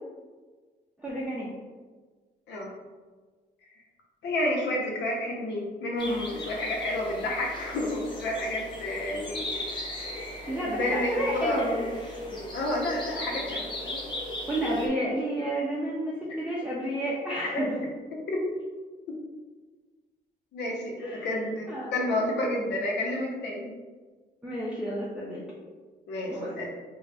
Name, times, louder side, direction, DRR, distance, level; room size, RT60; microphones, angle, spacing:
voice 1, 1.0-1.5 10.5-11.9 12.2-12.4 14.5-17.7 21.0-21.4 21.7-21.9 24.4-25.4 26.3-26.5, equal, 5° right, -7 dB, 0.5 m, -31 dB
voice 2, 4.2-9.6 10.6-11.6 12.5-14.0 18.1-18.4 20.5-23.8 26.1-26.7, left 1 dB, 90° left, -1 dB, 0.8 m, -30 dB
sound 1, 6.0-14.9, left 1 dB, 25° left, 0.7 m, -37 dB
3.8 x 2.2 x 3.3 m, 1.4 s
cardioid pair, 130°, 17 cm